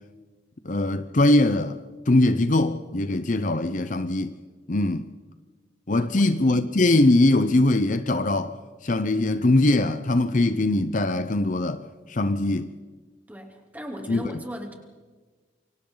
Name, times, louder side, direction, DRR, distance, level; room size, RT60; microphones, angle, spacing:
voice 1, 0.6-1.8 2.1-4.3 4.7-5.1 5.9-8.6 8.8-12.7 14.1-14.2, left 2 dB, 40° left, 0.7 m, -21 dB
voice 2, 6.0-6.3 13.3-14.7, equal, 10° right, 3.2 m, -37 dB
28.0 x 24.5 x 4.0 m
head